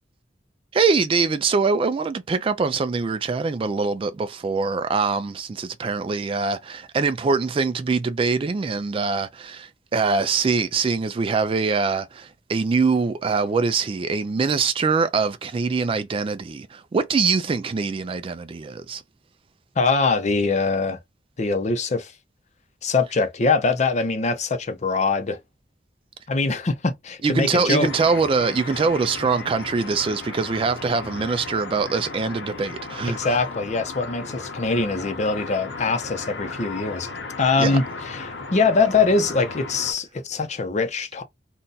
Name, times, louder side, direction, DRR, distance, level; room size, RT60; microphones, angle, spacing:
voice 1, 0.7-19.0 27.2-33.2 37.6-37.8, right 4 dB, 30° right, 0.3 m, -23 dB
voice 2, 19.8-21.0 21.4-22.1 22.8-25.4 26.3-27.9 33.0-37.1 37.4-41.2, left 4 dB, 40° left, 0.6 m, -23 dB
sound 1, 27.8-39.9, left 3 dB, 85° left, 0.9 m, -36 dB
2.6 x 2.2 x 3.8 m
head